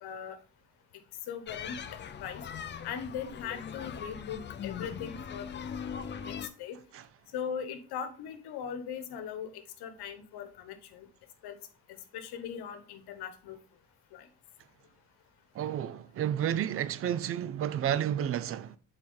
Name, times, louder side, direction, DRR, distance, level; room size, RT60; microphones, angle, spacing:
voice 1, 0.0-0.4 1.3-1.8 2.2-2.4 2.8-5.6 6.2-6.8 7.3-9.5 9.8-11.1 11.4-11.5 12.1-13.6 14.1-14.2, left 8 dB, 70° left, 1.2 m, -39 dB
sound 1, 1.5-6.5, left 7 dB, 30° left, 0.5 m, -40 dB
voice 2, 15.5-18.8, right 10 dB, 35° right, 0.4 m, -31 dB
7.4 x 4.4 x 3.9 m
cardioid pair, 145°, 39 cm